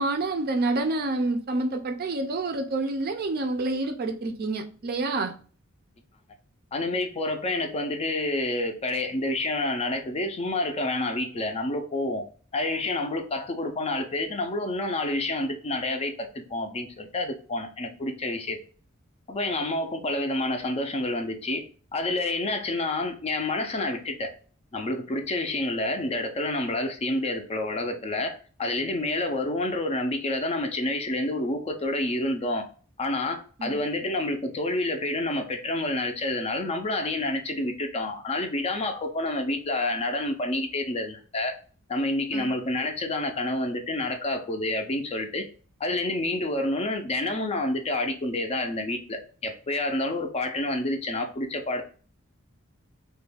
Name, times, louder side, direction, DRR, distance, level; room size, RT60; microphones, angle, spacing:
voice 1, 0.0-5.3 33.6-33.8 42.3-42.5, right 2 dB, 45° right, 0.4 m, -28 dB
voice 2, 6.7-12.2 12.5-18.6 19.3-21.6 21.9-24.3 24.7-32.7 33.0-41.6 41.9-45.5 45.8-51.8, left 2 dB, 30° left, 0.4 m, -28 dB
2.3 x 2.2 x 3.3 m
head